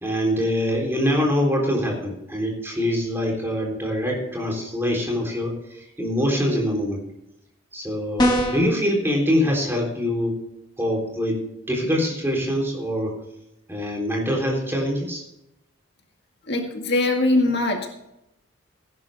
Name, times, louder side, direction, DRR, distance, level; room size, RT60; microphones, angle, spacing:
voice 1, 0.0-7.0 7.7-10.4 10.8-13.2 13.7-15.2, equal, 10° right, -1 dB, 3.7 m, -24 dB
sound 1, 8.2-8.7, equal, 20° left, 1.9 m, -20 dB
voice 2, 16.5-17.9, left 2 dB, 55° left, 2 dB, 2.0 m, -21 dB
17.0 x 11.0 x 3.6 m, 0.84 s
head